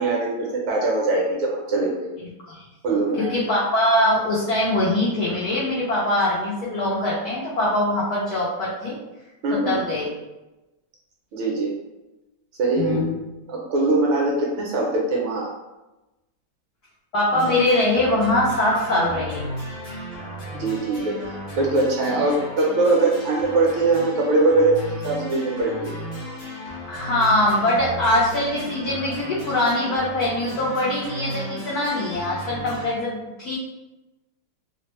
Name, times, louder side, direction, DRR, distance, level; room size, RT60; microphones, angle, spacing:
voice 1, 0.0-2.1 2.8-3.3 9.4-9.8 11.3-11.7 12.6-13.0 13.5-15.5 20.5-21.2 21.5-25.9, right 2 dB, 75° right, -2 dB, 1.3 m, -22 dB
voice 2, 3.2-9.0 9.7-10.1 12.8-13.2 17.1-19.4 26.9-33.6, left 1 dB, 85° left, -5 dB, 0.8 m, -22 dB
sound 1, 17.3-32.9, equal, 45° left, 0.8 m, -35 dB
3.4 x 2.1 x 2.9 m, 1.0 s
omnidirectional pair, 2.3 m